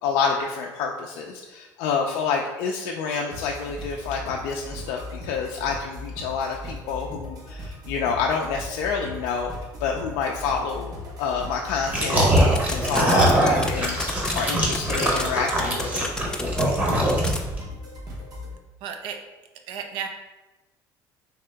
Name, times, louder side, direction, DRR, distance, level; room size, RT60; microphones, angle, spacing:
voice 1, 0.0-9.5 9.8-14.0 14.3-16.1, left 5 dB, 85° left, 0 dB, 0.4 m, -28 dB
sound 1, 3.3-18.5, left 1 dB, 45° right, 0.8 m, -38 dB
sound 2, 11.8-17.6, right 1 dB, 20° right, 0.8 m, -22 dB
sound 3, 12.4-15.2 15.5-16.6 17.1-17.4, left 2 dB, 10° left, 0.4 m, -29 dB
voice 2, 18.8-19.2 19.7-20.1, right 7 dB, 75° right, 5 dB, 0.5 m, -34 dB
3.4 x 2.8 x 3.4 m, 1.1 s
cardioid pair, 120°, 8 cm